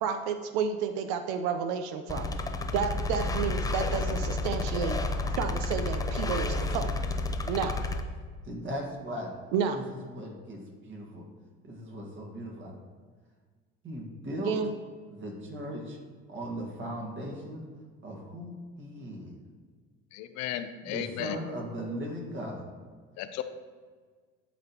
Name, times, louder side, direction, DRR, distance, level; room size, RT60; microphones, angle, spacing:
voice 1, 0.0-2.3 2.7-5.0 5.3-6.9 7.5-7.7 9.5-9.8 14.4-14.7, right 7 dB, 75° right, 8 dB, 0.6 m, -31 dB
sound 1, 2.1-8.0, left 2 dB, 10° left, 0.5 m, -30 dB
voice 2, 8.5-9.3 9.7-11.3 11.6-12.8 13.8-14.5 15.1-16.0 16.3-17.6 18.0-19.3 20.8-22.6, equal, 40° right, 0 dB, 1.7 m, -38 dB
voice 3, 20.1-21.4 23.2-23.4, left 12 dB, 65° left, 10 dB, 0.6 m, -35 dB
11.0 x 4.0 x 2.9 m, 1.5 s
supercardioid pair, 80°, 30 cm